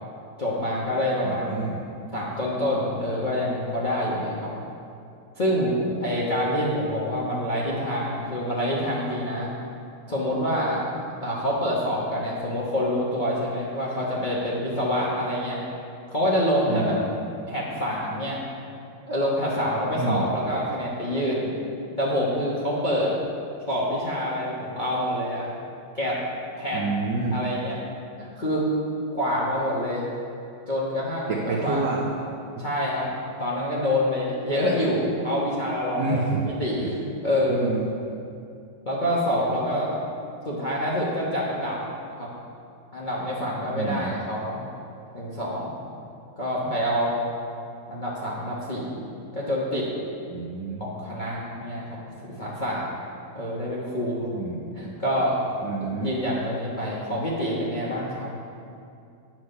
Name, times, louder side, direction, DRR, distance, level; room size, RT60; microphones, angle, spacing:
voice 1, 0.4-1.6 2.1-4.5 5.4-9.5 10.1-10.8 11.2-15.6 16.1-17.0 17.5-18.4 19.1-21.5 22.0-23.2 23.7-25.5 25.9-26.2 26.6-26.8 27.3-27.8 28.2-28.7 29.1-30.1 30.7-31.8 32.6-33.1 33.4-37.7 38.8-39.9 40.4-41.8 42.1-42.3 42.9-44.6 45.1-45.8 46.4-47.2 47.9-49.0 49.3-49.9 50.8-52.9 53.3-54.3 54.7-55.4 55.8-58.3, equal, 35° left, -6 dB, 0.8 m, -26 dB
voice 2, 1.2-1.8 16.7-17.1 19.9-20.3 26.7-27.3 31.3-32.3 36.0-36.4 36.8-36.9 37.5-37.9 43.7-44.2 50.3-50.8 54.3-54.8 55.6-56.1, right 3 dB, 65° right, -1 dB, 1.1 m, -28 dB
9.4 x 4.6 x 6.6 m, 2.5 s
omnidirectional pair, 2.3 m